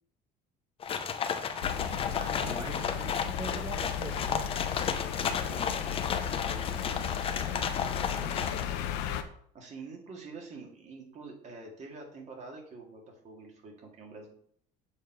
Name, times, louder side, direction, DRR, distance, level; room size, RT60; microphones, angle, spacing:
sound 1, 0.8-8.6, left 6 dB, 30° left, 0.7 m, -33 dB
sound 2, 1.6-9.2, left 10 dB, 85° left, 0.7 m, -35 dB
voice 1, 1.7-2.6 5.1-8.9 9.5-14.4, right 3 dB, 40° right, 1 dB, 2.1 m, -47 dB
voice 2, 2.2-4.5, right 3 dB, 25° right, 2 dB, 0.8 m, -42 dB
7.1 x 4.3 x 4.7 m, 0.63 s
cardioid pair, 135°, 18 cm